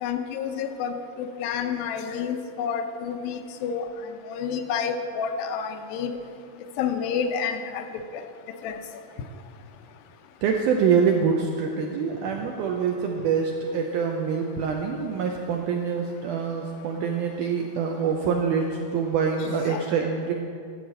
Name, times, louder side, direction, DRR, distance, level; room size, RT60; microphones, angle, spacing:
voice 1, 0.0-3.9 4.3-6.1 6.8-7.8 8.1-8.2 8.6-8.8 19.7-19.8, left 7 dB, 80° left, 7 dB, 2.3 m, -29 dB
voice 2, 10.4-20.3, right 6 dB, 80° right, 2 dB, 1.8 m, -25 dB
12.0 x 4.8 x 7.7 m, 2.3 s
omnidirectional pair, 4.3 m